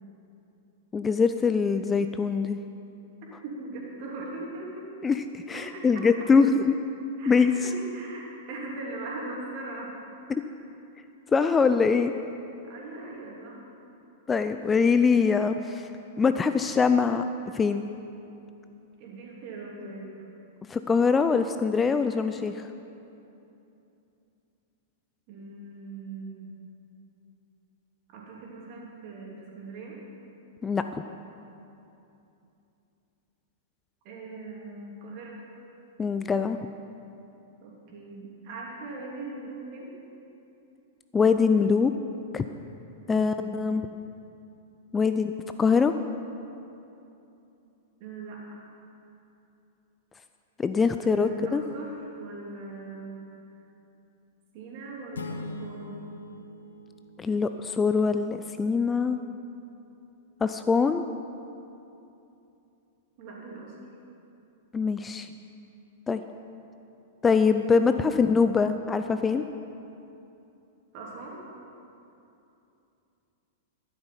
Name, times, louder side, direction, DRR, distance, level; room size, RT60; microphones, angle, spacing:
voice 1, 0.9-2.6 5.0-6.8 7.3-7.5 10.3-10.4 11.3-12.1 14.3-15.9 16.2-17.2 17.5-17.9 20.7-22.7 30.6-30.8 36.0-36.6 41.1-41.9 42.3-42.4 43.1-43.8 44.9-45.3 45.6-45.9 50.6-51.6 57.2-59.2 60.4-61.0 64.7-65.3 66.1-66.2 67.2-69.4, left 5 dB, 15° left, 9 dB, 0.4 m, -23 dB
voice 2, 3.4-4.9 5.5-6.3 7.2-9.9 10.3-10.5 12.7-13.6 19.0-20.1 25.3-26.5 28.1-30.0 34.0-35.4 37.6-40.0 43.1-43.5 48.0-48.6 51.0-53.3 54.5-56.0 63.2-63.7 67.7-67.8 70.9-71.4, right 2 dB, 45° right, -3 dB, 3.0 m, -40 dB
sound 1, 55.1-57.9, left 2 dB, 70° left, 0.7 m, -41 dB
12.0 x 11.0 x 5.7 m, 2.8 s
figure-of-eight pair, 100°, 0 cm